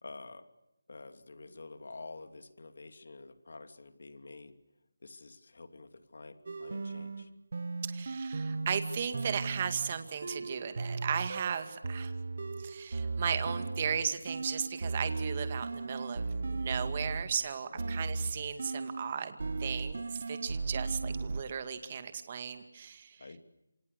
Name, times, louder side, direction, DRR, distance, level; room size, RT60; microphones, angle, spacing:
voice 1, 0.0-0.5 0.9-4.5 5.0-7.3 17.7-18.0 23.2-23.4, left 3 dB, 55° left, 9 dB, 2.8 m, -49 dB
sound 1, 6.5-17.4 17.8-19.1 19.4-21.4, right 3 dB, 50° right, 1.1 m, -36 dB
voice 2, 7.8-12.1 12.6-23.2, right 7 dB, 25° right, 9 dB, 2.1 m, -36 dB
28.0 x 26.5 x 6.9 m, 0.91 s
figure-of-eight pair, 175°, 0 cm